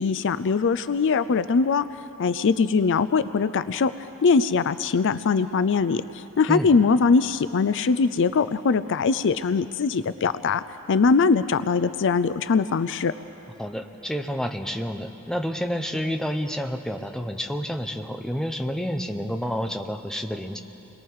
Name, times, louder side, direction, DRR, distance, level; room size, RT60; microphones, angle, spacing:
voice 1, 0.0-1.9 2.2-3.9 4.2-10.6 10.9-13.1, left 5 dB, 60° left, 13 dB, 0.5 m, -21 dB
voice 2, 13.6-20.6, equal, 5° left, 4 dB, 0.9 m, -29 dB
29.5 x 21.5 x 4.8 m, 2.9 s
head